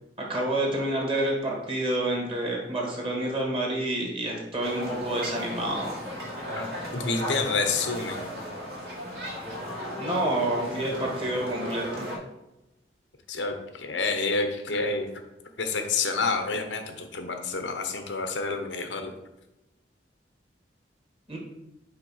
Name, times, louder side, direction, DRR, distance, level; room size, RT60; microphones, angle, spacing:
voice 1, 0.2-5.9 10.0-12.1 21.3-21.4, right 1 dB, 30° right, -1 dB, 1.7 m, -28 dB
sound 1, 4.6-12.2, equal, 60° right, 2.1 m, -36 dB
voice 2, 6.6-8.3 13.3-15.1 15.6-19.1, left 4 dB, 85° left, 6 dB, 0.9 m, -29 dB
5.6 x 3.9 x 5.6 m, 0.93 s
head